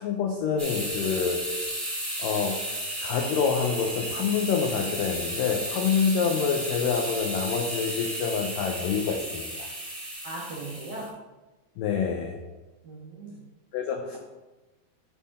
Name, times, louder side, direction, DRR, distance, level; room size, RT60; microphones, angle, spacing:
voice 1, 0.0-1.4 2.2-2.6 3.0-9.7 11.8-12.4 13.7-14.2, left 6 dB, 85° left, 2 dB, 1.9 m, -27 dB
sound 1, 0.6-11.1, equal, ahead, 0.9 m, -34 dB
voice 2, 10.2-11.1 12.8-13.4, right 2 dB, 70° right, -7 dB, 1.0 m, -38 dB
10.5 x 3.7 x 4.2 m, 1.1 s
omnidirectional pair, 4.7 m